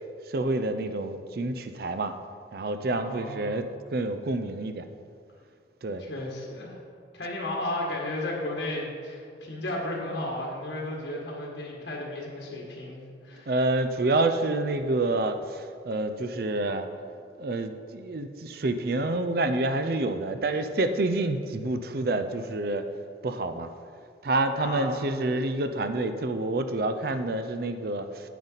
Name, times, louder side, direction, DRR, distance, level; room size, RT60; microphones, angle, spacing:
voice 1, 0.3-2.1 2.5-4.8 5.8-6.0 13.5-16.9 17.4-22.8 23.2-23.7 24.2-28.3, right 2 dB, 55° right, 8 dB, 0.5 m, -28 dB
voice 2, 2.9-3.5 6.0-6.8 7.1-13.5 24.6-25.0, left 1 dB, 75° left, -3 dB, 1.8 m, -34 dB
9.2 x 8.9 x 4.0 m, 2.4 s
head